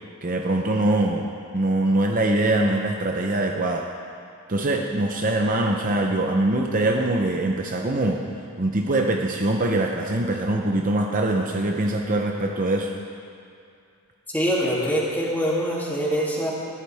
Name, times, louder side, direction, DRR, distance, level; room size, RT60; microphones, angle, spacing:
voice 1, 0.2-3.8 4.5-8.2 8.6-12.9, right 2 dB, 40° right, 1 dB, 0.8 m, -23 dB
voice 2, 14.3-16.5, equal, 10° left, -6 dB, 2.8 m, -24 dB
20.0 x 14.5 x 3.5 m, 2.4 s
head